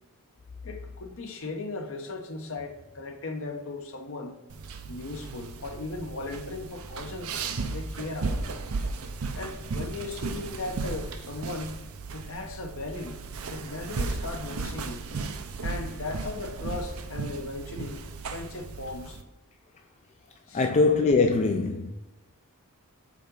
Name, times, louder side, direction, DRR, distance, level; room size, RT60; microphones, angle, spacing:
voice 1, 0.6-4.4 4.9-7.3 7.7-8.4 9.3-11.8 12.1-13.2 13.5-15.0 15.6-18.0 18.3-19.2 20.5-20.6, left 2 dB, 65° left, 0.9 m, -37 dB
sound 1, 4.5-19.2, right 3 dB, 70° right, 0.6 m, -35 dB
voice 2, 20.5-21.9, left 3 dB, 30° left, 0.3 m, -22 dB
5.1 x 3.8 x 5.2 m
head